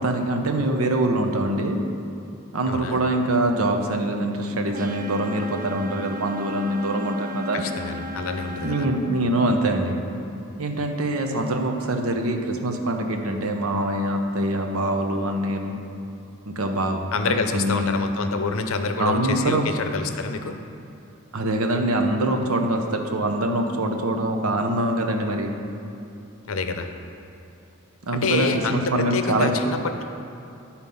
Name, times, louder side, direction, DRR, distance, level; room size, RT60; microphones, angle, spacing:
voice 1, 0.0-1.8 2.5-7.6 8.6-10.0 10.6-15.8 16.5-17.0 17.3-17.9 19.0-19.7 21.3-25.5 28.1-29.5, right 1 dB, 75° right, 4 dB, 0.8 m, -24 dB
voice 2, 2.6-3.0 7.5-8.9 17.1-20.6 26.5-26.9 28.1-30.0, left 4 dB, 70° left, 7 dB, 0.6 m, -27 dB
sound 1, 4.7-8.9, left 1 dB, 40° right, 0.6 m, -35 dB
11.0 x 4.4 x 5.4 m, 2.7 s
head